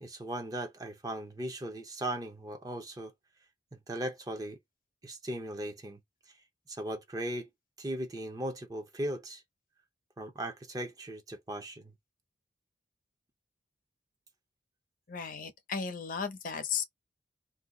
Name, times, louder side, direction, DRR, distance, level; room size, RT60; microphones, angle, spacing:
voice 1, 0.0-3.1 3.9-4.6 5.0-6.0 6.7-7.5 7.8-9.4 10.2-11.9, right 1 dB, 20° right, 0.6 m, -38 dB
voice 2, 15.1-16.8, left 6 dB, 45° left, 0.6 m, -35 dB
2.7 x 2.3 x 3.6 m
head